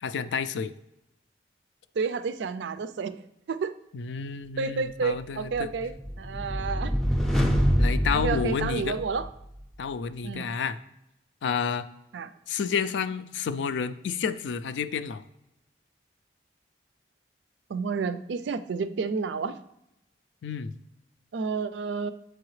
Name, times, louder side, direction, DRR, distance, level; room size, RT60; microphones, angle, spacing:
voice 1, 0.0-0.7 3.9-5.7 7.8-9.0 9.8-10.8 11.4-11.9 12.5-15.2 20.4-20.7, left 6 dB, 85° left, 13 dB, 0.4 m, -30 dB
voice 2, 2.0-3.7 4.6-6.9 8.1-9.3 10.2-10.5 12.1-12.3 17.7-19.6 21.3-22.1, right 5 dB, 80° right, 13 dB, 0.4 m, -30 dB
sound 1, 5.6-9.4, equal, ahead, 0.4 m, -26 dB
7.7 x 4.8 x 3.2 m, 0.85 s
head